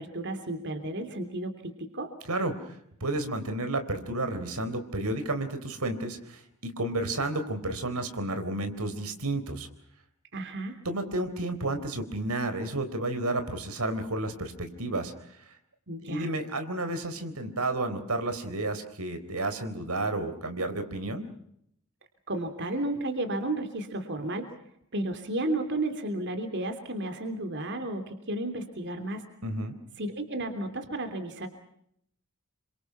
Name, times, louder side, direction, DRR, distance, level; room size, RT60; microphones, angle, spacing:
voice 1, 0.0-2.1 10.3-10.8 15.9-16.3 22.3-24.5 24.9-29.2 30.0-31.5, right 1 dB, 55° right, 7 dB, 3.1 m, -33 dB
voice 2, 2.3-9.7 10.9-15.1 16.0-21.2 29.4-29.8, right 2 dB, 85° right, 8 dB, 4.0 m, -31 dB
29.0 x 25.5 x 5.8 m, 0.72 s
head